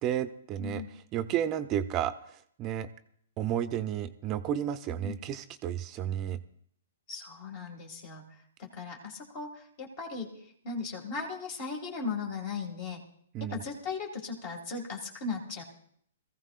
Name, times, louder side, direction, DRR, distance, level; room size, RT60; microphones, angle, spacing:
voice 1, 0.0-2.9 3.4-6.4 13.3-13.6, right 10 dB, 30° right, 11 dB, 0.6 m, -32 dB
voice 2, 0.6-0.9 4.9-5.2 7.1-8.2 8.6-10.3 10.6-13.0 13.5-15.6, left 4 dB, 45° left, 0 dB, 2.2 m, -37 dB
22.0 x 15.0 x 2.5 m, 0.64 s
hypercardioid pair, 130°, 0 cm